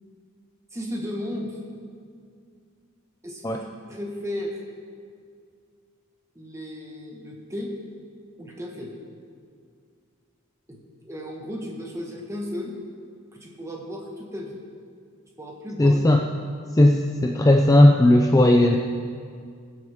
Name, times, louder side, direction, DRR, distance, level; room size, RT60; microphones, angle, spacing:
voice 1, 0.7-1.6 3.2-4.6 6.3-7.7 8.4-8.9 10.7-10.8 11.0-12.7 13.3-14.6 15.4-16.0, left 1 dB, 15° right, -1 dB, 1.4 m, -34 dB
voice 2, 15.8-16.2 16.7-18.8, left 1 dB, 15° left, 3 dB, 0.4 m, -16 dB
21.5 x 7.8 x 3.6 m, 2.2 s
head